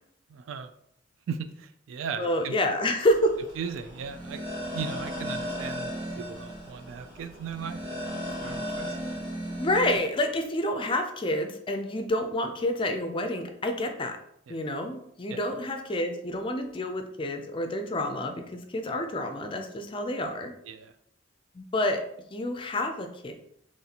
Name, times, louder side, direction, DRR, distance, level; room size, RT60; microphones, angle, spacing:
voice 1, 0.3-0.7 1.3-2.6 3.6-4.4 4.7-9.0 14.5-14.6 15.3-15.4 20.6-20.9, right 6 dB, 80° right, 11 dB, 0.3 m, -37 dB
voice 2, 2.2-3.4 9.6-14.2 14.5-20.5 21.5-22.0 22.3-23.3, left 1 dB, 25° left, 5 dB, 0.4 m, -28 dB
sound 1, 3.1-10.0, equal, 60° right, 1.4 m, -36 dB
4.0 x 3.1 x 2.8 m, 0.73 s
head